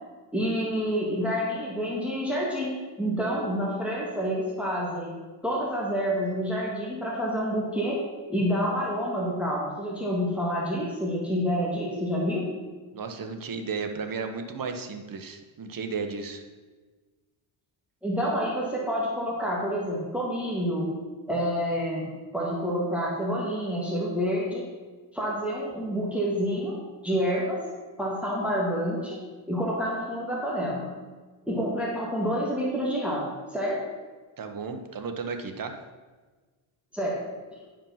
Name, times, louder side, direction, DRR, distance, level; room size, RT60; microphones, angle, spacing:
voice 1, 0.3-5.2 5.4-8.0 8.3-12.5 18.0-20.9 21.3-24.6 25.1-26.8 27.0-27.6 28.0-29.2 29.5-30.9 31.5-33.8 36.9-37.3 37.5-37.6, equal, 5° right, -4 dB, 1.9 m, -28 dB
voice 2, 12.9-16.4 34.4-35.7, right 5 dB, 45° right, 6 dB, 1.1 m, -34 dB
10.5 x 5.1 x 5.7 m, 1.3 s
cardioid pair, 100°, 47 cm